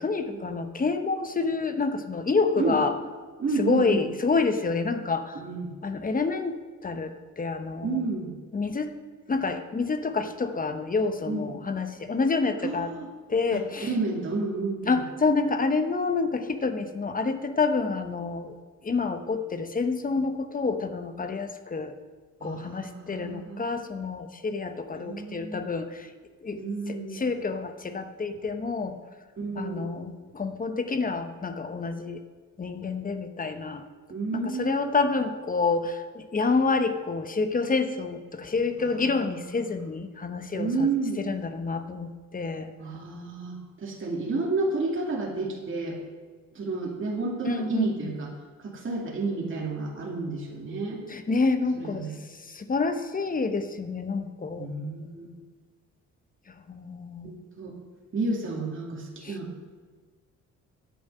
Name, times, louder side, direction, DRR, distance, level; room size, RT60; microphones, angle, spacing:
voice 1, 0.0-2.9 3.6-5.4 5.8-6.6 6.8-8.0 8.5-8.9 9.3-12.9 13.3-13.9 14.8-18.5 18.8-21.9 22.4-26.1 26.4-26.6 26.9-29.0 29.5-32.2 32.6-33.8 34.3-40.9 41.2-42.7 47.5-48.1 51.1-52.1 52.5-54.7 56.7-57.3 59.2-59.4, left 4 dB, 30° left, 8 dB, 0.9 m, -28 dB
voice 2, 3.4-4.1 5.3-5.7 7.8-8.3 11.2-11.5 12.6-13.1 13.5-15.0 22.4-23.6 24.9-25.6 26.5-27.2 29.4-30.0 34.1-35.1 38.8-39.3 39.6-39.9 40.5-41.2 42.8-46.0 46.5-48.3 48.6-51.0 51.8-52.2 54.6-55.3 57.2-57.8 58.1-59.5, right 3 dB, 40° right, -2 dB, 2.6 m, -31 dB
10.5 x 8.7 x 5.6 m, 1.5 s
cardioid pair, 90°, 30 cm